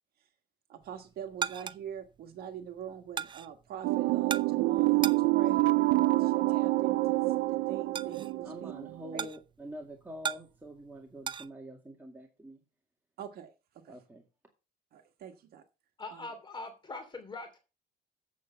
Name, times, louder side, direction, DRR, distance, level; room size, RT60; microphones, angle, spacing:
voice 1, 0.7-5.7 6.0-8.7 9.1-9.3 13.2-14.0 14.9-15.6 16.1-16.3, right 9 dB, 65° right, 1.4 m, -44 dB
sound 1, 0.8-11.5, right 7 dB, 30° right, 0.5 m, -41 dB
sound 2, 3.8-9.1, right 20 dB, 85° right, 0.4 m, -27 dB
voice 2, 8.4-12.6 13.9-14.2, equal, 10° right, 2.2 m, -46 dB
voice 3, 16.0-17.6, left 3 dB, 25° left, 3.0 m, -42 dB
8.4 x 7.9 x 5.6 m
cardioid pair, 110°, 17 cm